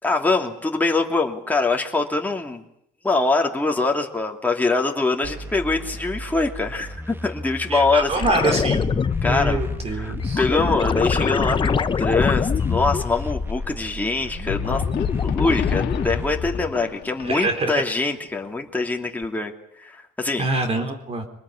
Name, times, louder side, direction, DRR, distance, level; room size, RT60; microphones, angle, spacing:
voice 1, 0.0-2.6 3.0-8.6 9.2-9.6 9.9-14.8 15.2-19.5 19.8-20.5, left 3 dB, 10° left, 1 dB, 2.8 m, -24 dB
sound 1, 5.2-16.3, right 1 dB, 15° right, 2.0 m, -35 dB
voice 2, 7.7-10.4 17.2-17.8 20.4-21.2, right 2 dB, 35° right, 5 dB, 4.0 m, -25 dB
sound 2, 8.1-13.9 14.3-16.8 19.2-19.3, left 6 dB, 30° left, 1.0 m, -24 dB
sound 3, 14.5-18.0, left 12 dB, 85° left, 1.9 m, -31 dB
24.5 x 20.5 x 9.8 m, 0.74 s
cardioid pair, 110°, 17 cm